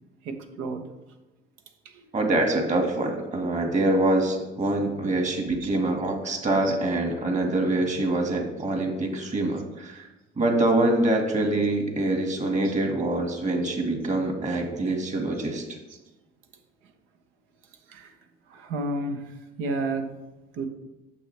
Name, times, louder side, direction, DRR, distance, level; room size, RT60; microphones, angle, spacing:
voice 1, 0.2-0.8 5.5-5.9 6.6-6.8 10.6-10.7 11.5-11.7 12.6-12.7 15.4-15.5 15.9-16.0 17.9-18.1 18.5-20.1 20.5-20.7, right 2 dB, 75° right, 6 dB, 1.1 m, -32 dB
voice 2, 2.1-10.1 10.4-15.8, right 2 dB, 35° right, 3 dB, 1.9 m, -25 dB
8.8 x 6.8 x 3.3 m, 1.0 s
supercardioid pair, 75°, 21 cm